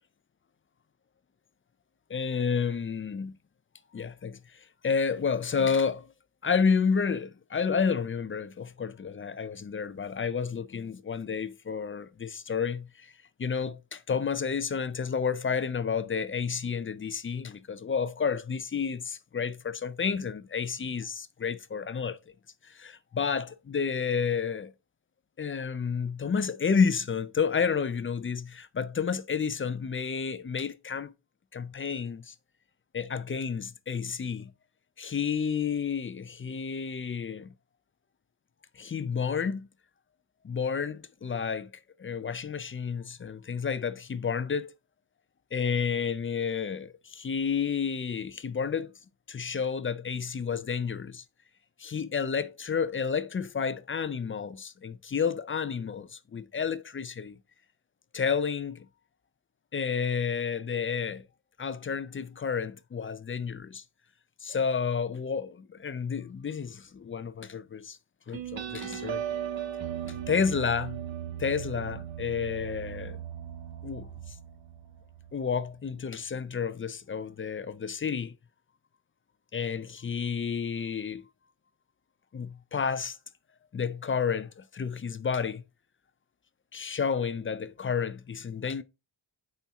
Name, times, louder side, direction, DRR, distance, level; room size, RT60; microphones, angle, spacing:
voice 1, 2.1-3.3 3.9-4.4 4.8-6.0 6.4-13.1 13.4-22.2 22.7-24.7 25.4-31.1 31.5-32.3 32.9-34.5 35.0-37.5 38.8-39.7 40.4-41.7 42.0-44.7 45.5-48.9 49.3-51.2 51.8-57.4 58.1-58.8 59.7-61.2 61.6-63.8 64.4-68.0 68.3-69.2 70.0-71.0 71.4-73.2 73.8-74.1 75.3-78.3 79.5-81.3 82.3-83.2 83.7-85.6 86.7-88.8, left 6 dB, 30° left, 0.4 m, -30 dB
sound 1, 68.3-75.5, right 10 dB, 80° right, 1.2 m, -38 dB
9.1 x 4.4 x 3.4 m
wide cardioid pair, 160°, 46 cm